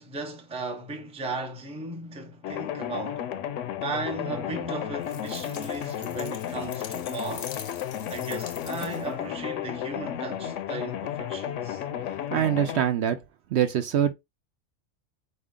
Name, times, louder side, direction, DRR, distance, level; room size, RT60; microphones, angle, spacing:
voice 1, 0.0-3.3 3.8-7.5 8.1-11.8, right 2 dB, 5° right, 0.5 m, -36 dB
sound 1, 2.4-12.8, left 10 dB, 75° left, 0.9 m, -33 dB
sound 2, 5.0-9.2, left 7 dB, 60° left, 0.4 m, -44 dB
voice 2, 12.3-13.2 13.5-14.1, right 10 dB, 65° right, 0.8 m, -24 dB
4.3 x 2.3 x 3.6 m
omnidirectional pair, 1.3 m